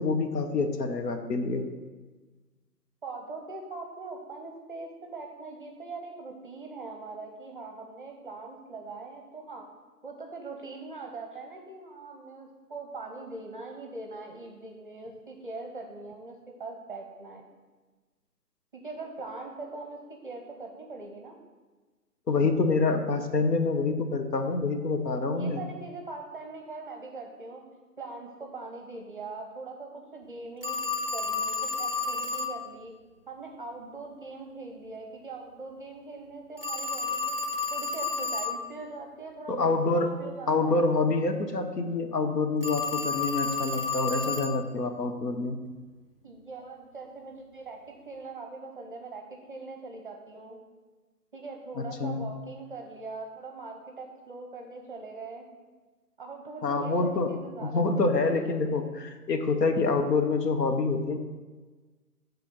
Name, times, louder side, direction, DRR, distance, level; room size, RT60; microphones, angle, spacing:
voice 1, 0.0-1.7 22.3-25.6 39.5-40.1 40.5-45.6 51.8-52.2 56.6-57.3 57.6-61.2, left 3 dB, 85° left, 6 dB, 1.1 m, -26 dB
voice 2, 3.0-9.6 10.0-17.4 18.7-21.4 25.3-27.6 28.0-30.8 31.1-32.9 33.3-37.4 37.7-40.8 46.2-50.6 51.3-55.5 56.2-58.6, right 3 dB, 35° right, 2 dB, 0.6 m, -42 dB
Telephone, 30.6-32.6 36.6-38.6 42.6-44.6, left 4 dB, 40° left, 0.4 m, -31 dB
8.2 x 3.5 x 6.2 m, 1.3 s
hypercardioid pair, 155°, 47 cm